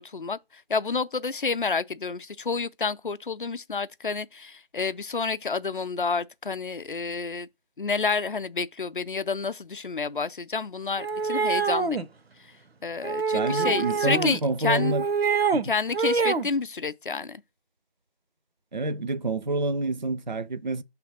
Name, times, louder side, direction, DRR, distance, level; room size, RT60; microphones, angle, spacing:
voice 1, 0.0-7.5 7.8-12.0 12.8-15.0 15.6-17.4, left 4 dB, 60° left, 0.5 m, -29 dB
sound 1, 11.0-12.1 13.0-14.4 14.7-15.6 15.9-16.5, right 5 dB, 90° right, 0.7 m, -25 dB
voice 2, 13.3-15.0 15.5-15.6 18.7-20.8, right 2 dB, 50° right, 0.4 m, -28 dB
5.8 x 3.4 x 5.8 m
figure-of-eight pair, 175°, 30 cm